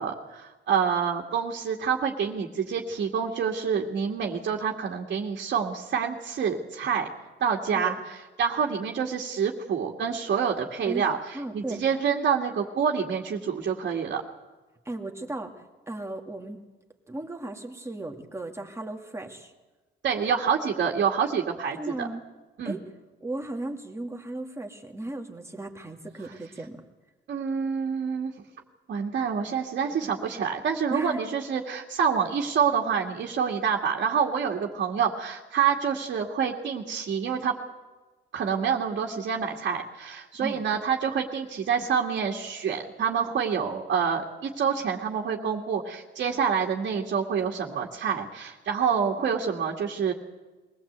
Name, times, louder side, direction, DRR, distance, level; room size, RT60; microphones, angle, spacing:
voice 1, 0.0-7.1 7.4-8.0 8.4-14.2 20.0-22.1 22.6-22.8 27.3-28.3 28.9-37.6 38.3-50.1, right 7 dB, 60° right, 0 dB, 2.1 m, -27 dB
voice 2, 11.3-11.9 14.9-16.6 17.1-19.5 21.8-22.2 22.6-22.8 23.2-26.8 30.9-31.2 40.4-40.6 49.3-49.4, right 2 dB, 15° right, 2 dB, 2.4 m, -36 dB
22.5 x 17.5 x 8.1 m, 1.2 s
cardioid pair, 90°, 20 cm